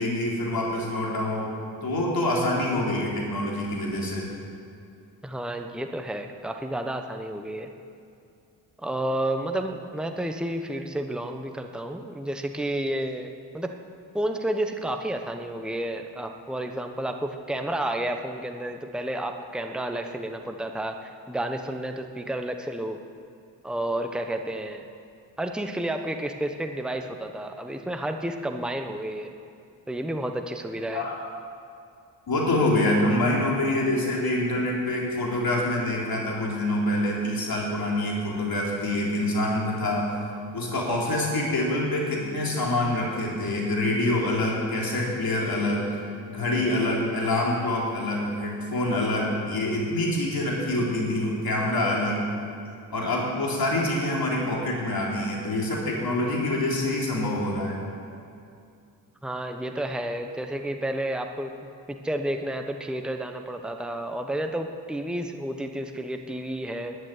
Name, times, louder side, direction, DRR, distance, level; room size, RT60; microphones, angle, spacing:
voice 1, 0.0-1.5 1.8-4.3 30.9-31.1 32.3-40.1 40.5-45.9 46.3-52.3 52.9-57.8, left 1 dB, 55° left, -3 dB, 4.0 m, -26 dB
voice 2, 5.2-7.7 8.8-13.7 14.1-23.0 23.6-24.9 25.4-29.3 29.9-31.1 59.2-61.5 61.9-67.0, right 1 dB, ahead, 5 dB, 1.2 m, -31 dB
11.0 x 9.3 x 9.6 m, 2.5 s
supercardioid pair, 50°, 43 cm